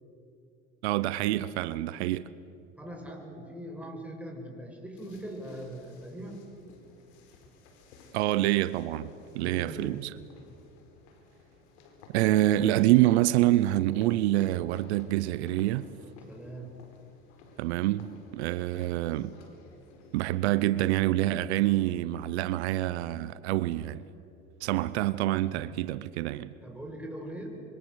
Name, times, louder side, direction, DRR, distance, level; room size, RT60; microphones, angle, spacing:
voice 1, 0.8-2.3 8.1-10.1 12.1-15.9 17.6-19.3 20.1-24.0 24.6-26.5, right 15 dB, 85° right, 0.8 m, -26 dB
voice 2, 2.8-6.4 9.4-10.1 16.3-16.8 26.6-27.6, right 1 dB, 5° right, 7.0 m, -41 dB
sound 1, 4.9-20.3, left 3 dB, 80° left, 4.6 m, -56 dB
26.5 x 25.0 x 8.1 m
supercardioid pair, 85°, 32 cm